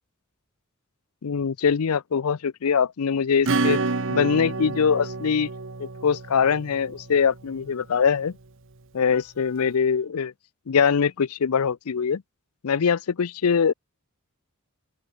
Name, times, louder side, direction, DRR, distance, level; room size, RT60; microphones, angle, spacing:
voice 1, 1.2-3.8 4.1-5.5 5.8-8.3 8.9-10.3 10.7-12.2 12.6-13.7, left 6 dB, 80° left, 0.5 m, -23 dB
Acoustic guitar / Strum, 3.5-7.7, right 3 dB, 60° right, 1.2 m, -29 dB
open air
head